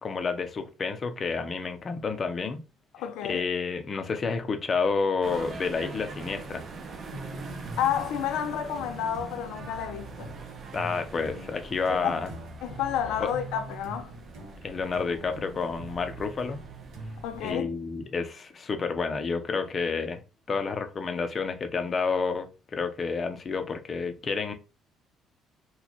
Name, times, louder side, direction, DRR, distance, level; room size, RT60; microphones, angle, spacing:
voice 1, 0.0-2.6 3.3-6.6 10.7-12.3 13.2-13.3 14.6-16.6 17.4-20.2 20.5-24.5, left 4 dB, 25° left, 0.5 m, -30 dB
voice 2, 2.9-3.4 7.8-10.3 11.9-12.1 12.6-14.1 17.2-17.7, left 9 dB, 85° left, 0.5 m, -30 dB
sound 1, 5.2-17.5, right 3 dB, 35° right, 0.6 m, -43 dB
sound 2, 7.1-18.0, right 1 dB, 75° right, 1.0 m, -44 dB
4.0 x 2.2 x 2.9 m
cardioid pair, 170°, 0 cm